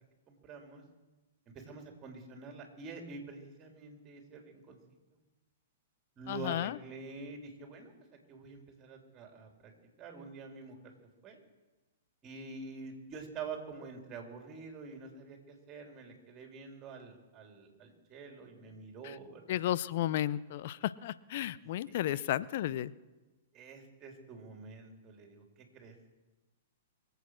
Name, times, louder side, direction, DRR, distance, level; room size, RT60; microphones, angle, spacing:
voice 1, 0.3-0.8 1.5-4.8 6.2-7.9 8.3-9.7 10.0-10.9 11.2-11.4 12.2-19.6 22.1-22.3 23.5-26.0, right 4 dB, 30° right, 3 dB, 3.6 m, -47 dB
voice 2, 6.3-6.7 19.5-22.9, left 12 dB, 55° left, 18 dB, 0.6 m, -33 dB
23.5 x 8.2 x 6.4 m, 1.2 s
hypercardioid pair, 115°, 0 cm